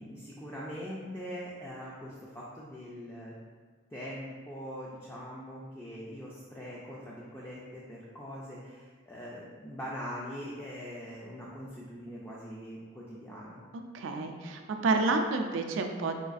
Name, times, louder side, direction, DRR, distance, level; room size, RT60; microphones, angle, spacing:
voice 1, 0.0-3.3 3.9-13.6, equal, 15° left, -6 dB, 0.3 m, -42 dB
voice 2, 13.9-16.3, right 3 dB, 90° right, 5 dB, 0.3 m, -29 dB
4.9 x 2.3 x 2.5 m, 1.5 s
head